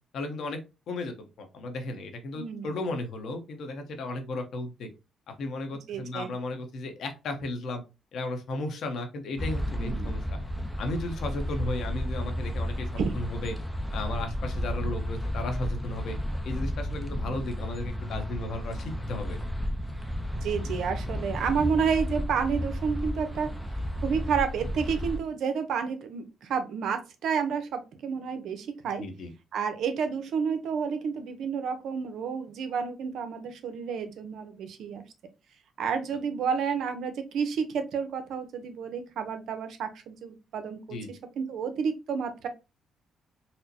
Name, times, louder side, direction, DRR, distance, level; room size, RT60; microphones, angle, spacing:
voice 1, 0.1-0.6 0.9-4.9 5.4-7.8 8.1-10.4 10.8-13.5 13.9-16.2 16.4-19.4 29.0-29.3 40.9-41.1, left 2 dB, 70° left, 5 dB, 0.8 m, -35 dB
voice 2, 2.4-2.7 5.9-6.3 9.8-10.2 13.0-13.1 20.4-23.5 24.0-29.0 29.5-35.0 35.8-42.5, right 6 dB, 75° right, 8 dB, 0.6 m, -30 dB
Hyde Park Corner - Walking through Park, 9.4-25.2, equal, 5° left, 0.6 m, -32 dB
4.2 x 2.1 x 2.7 m, 0.27 s
cardioid pair, 90°, 0 cm